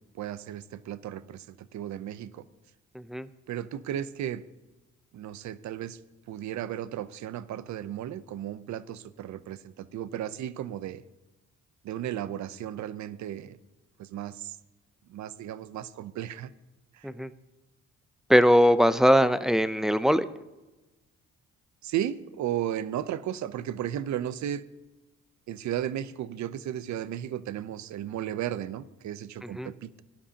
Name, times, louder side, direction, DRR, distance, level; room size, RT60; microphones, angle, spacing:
voice 1, 0.1-2.4 3.5-4.4 5.1-6.0 6.3-11.0 11.8-13.6 14.0-14.6 15.1-16.5 16.9-17.1 21.8-24.6 25.5-30.0, right 11 dB, 70° right, 15 dB, 0.7 m, -34 dB
voice 2, 2.9-3.3 17.0-17.3 18.3-20.3 29.6-29.7, equal, ahead, 13 dB, 0.5 m, -21 dB
17.5 x 11.5 x 2.9 m, 1.1 s
cardioid pair, 90°, 30 cm